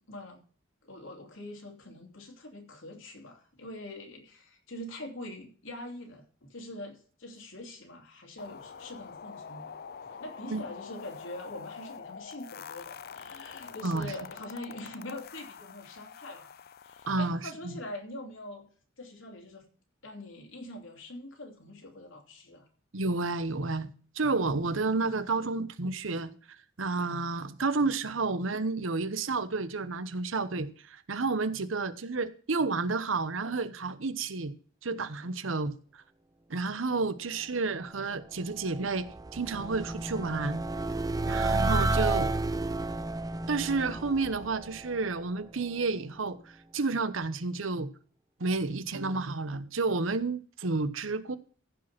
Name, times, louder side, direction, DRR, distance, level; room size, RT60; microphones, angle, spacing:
voice 1, 0.1-0.4 0.8-9.7 10.0-16.5 16.8-18.7 19.0-19.7 20.0-22.7, left 1 dB, 85° left, 3.0 m, -44 dB
sound 1, 8.4-17.1, left 6 dB, 50° left, 0.5 m, -46 dB
voice 2, 17.1-17.8 22.9-23.9 24.1-26.3 26.8-34.5 34.8-36.0 36.5-39.1 39.3-40.6 41.3-42.3 43.5-47.9 48.4-51.4, right 3 dB, 85° right, 0.9 m, -31 dB
sound 2, 38.3-45.5, right 2 dB, 20° right, 0.4 m, -31 dB
15.0 x 5.2 x 5.9 m
head